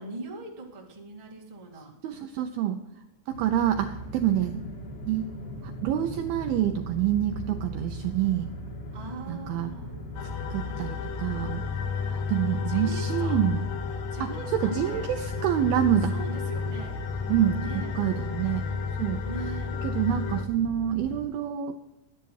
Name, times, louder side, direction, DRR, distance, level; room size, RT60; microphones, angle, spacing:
voice 1, 0.0-2.0 8.9-9.9 12.6-13.4 14.1-15.1 16.1-17.0 17.6-18.0 19.2-19.8, right 2 dB, 60° right, -2 dB, 0.3 m, -40 dB
voice 2, 2.0-2.8 3.3-4.6 5.0-5.3 5.6-8.5 9.3-9.7 10.5-11.6 12.0-13.7 14.2-16.2 17.3-17.6 18.0-18.6 19.0-19.2 19.8-21.8, right 11 dB, 85° right, 6 dB, 2.1 m, -27 dB
sound 1, 3.3-21.2, equal, 50° left, 2.0 m, -40 dB
sound 2, 10.1-20.4, left 5 dB, 75° left, 2.1 m, -32 dB
12.0 x 10.5 x 4.7 m, 0.93 s
omnidirectional pair, 5.0 m